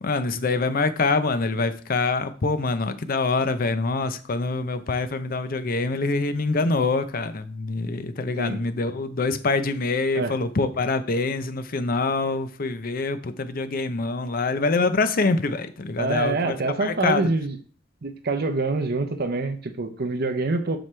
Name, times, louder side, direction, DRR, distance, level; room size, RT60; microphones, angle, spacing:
voice 1, 0.0-16.5 16.8-17.2, left 3 dB, 50° left, 11 dB, 0.7 m, -25 dB
voice 2, 16.0-17.6 18.0-20.8, right 3 dB, 55° right, 7 dB, 0.7 m, -26 dB
7.6 x 6.0 x 3.3 m, 0.42 s
head